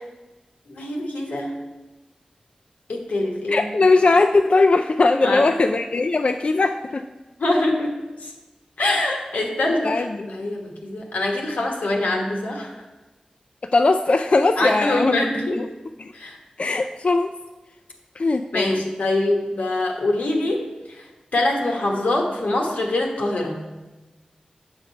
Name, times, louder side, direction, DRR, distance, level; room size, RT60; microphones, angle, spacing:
voice 1, 0.7-1.6 2.9-3.7 5.2-5.5 7.4-8.3 8.8-12.8 14.6-15.6 16.1-16.4 18.5-21.1 21.3-23.6, left 2 dB, 90° left, 1 dB, 1.2 m, -24 dB
voice 2, 3.5-7.0 9.8-10.3 13.7-15.2 15.6-15.7 16.0-16.1 16.6-17.3 18.2-18.8, left 3 dB, 55° left, 6 dB, 0.3 m, -19 dB
7.2 x 5.1 x 5.5 m, 1.1 s
cardioid pair, 45°, 2 cm